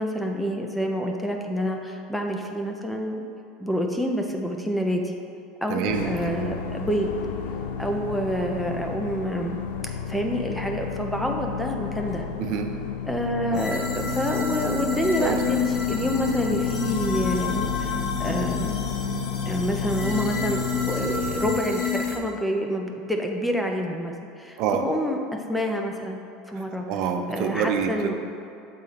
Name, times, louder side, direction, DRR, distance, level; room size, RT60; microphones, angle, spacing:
voice 1, 0.0-3.2 3.6-5.0 5.6-7.1 7.8-9.6 9.8-12.3 13.1-18.8 19.5-26.2 26.5-26.9 27.3-28.1, equal, 5° left, 2 dB, 0.6 m, -28 dB
voice 2, 5.7-6.1 6.4-6.5 12.4-12.7 13.5-13.6 15.2-15.4 24.6-24.8 26.9-28.1, right 7 dB, 60° right, 5 dB, 0.6 m, -26 dB
sound 1, 5.9-21.6, left 7 dB, 90° left, 0.4 m, -33 dB
sound 2, 13.5-22.2, left 5 dB, 45° left, 1.0 m, -28 dB
6.7 x 3.8 x 4.2 m, 2.6 s
supercardioid pair, 120°, 0 cm